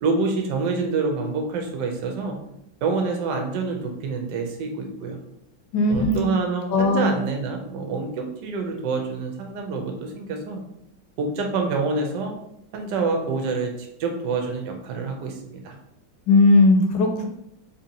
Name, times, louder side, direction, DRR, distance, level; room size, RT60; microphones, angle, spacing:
voice 1, 0.0-2.4 2.8-5.2 5.9-10.6 11.2-12.3 12.7-15.7, right 4 dB, 70° right, 3 dB, 1.2 m, -27 dB
voice 2, 5.7-6.2 6.7-7.2 16.3-17.3, left 2 dB, 80° left, 2 dB, 1.4 m, -17 dB
3.8 x 2.8 x 2.7 m, 0.76 s
omnidirectional pair, 2.2 m